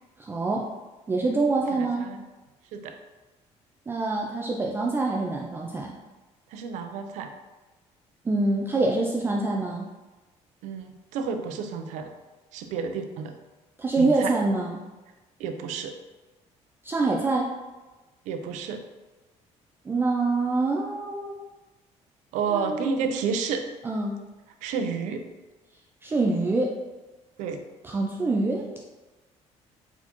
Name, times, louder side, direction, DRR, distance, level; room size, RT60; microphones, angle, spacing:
voice 1, 0.2-0.7 1.1-2.1 3.9-6.0 8.3-9.9 13.8-14.8 16.8-17.5 19.9-21.4 22.5-22.9 23.8-24.2 26.0-26.7 27.8-28.7, right 3 dB, 20° right, -1 dB, 0.3 m, -25 dB
voice 2, 1.7-2.2 2.7-2.9 6.5-7.3 10.6-12.1 12.5-13.4 14.0-14.3 15.4-15.9 18.3-18.8 22.3-23.6 24.6-25.2 27.4-27.6, right 6 dB, 90° right, 6 dB, 0.5 m, -30 dB
4.1 x 4.1 x 2.9 m, 1.2 s
cardioid pair, 135°, 12 cm